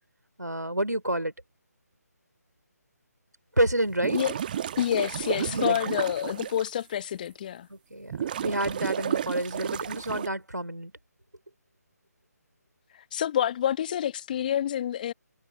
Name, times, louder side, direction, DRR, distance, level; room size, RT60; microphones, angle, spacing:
voice 1, 0.4-1.3 3.6-4.2 5.4-5.8 7.7-10.9, right 1 dB, 90° right, 3.6 m, -29 dB
sound 1, 3.9-6.7 7.3-7.4 8.1-10.3, right 9 dB, 30° right, 1.4 m, -32 dB
voice 2, 4.8-7.7 13.1-15.1, left 10 dB, 30° left, 1.2 m, -28 dB
figure-of-eight pair, 150°, 9 cm